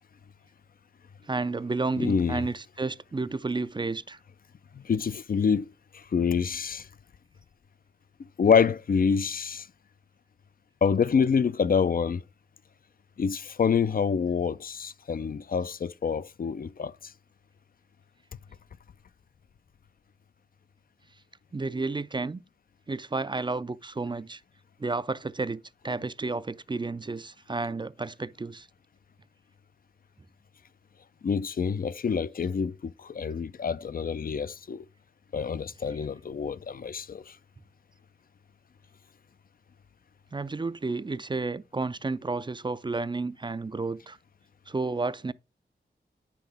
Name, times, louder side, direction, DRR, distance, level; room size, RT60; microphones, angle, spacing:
voice 1, 1.3-4.2 21.5-22.4 22.9-24.4 24.8-28.7 40.3-44.2 44.7-45.3, right 3 dB, 25° right, 0.4 m, -31 dB
voice 2, 2.0-2.4 4.7-6.9 8.4-9.7 10.8-12.2 13.2-17.1 31.2-34.9 35.3-37.4, left 6 dB, 55° left, 0.4 m, -27 dB
8.9 x 5.9 x 3.4 m
cardioid pair, 50°, 18 cm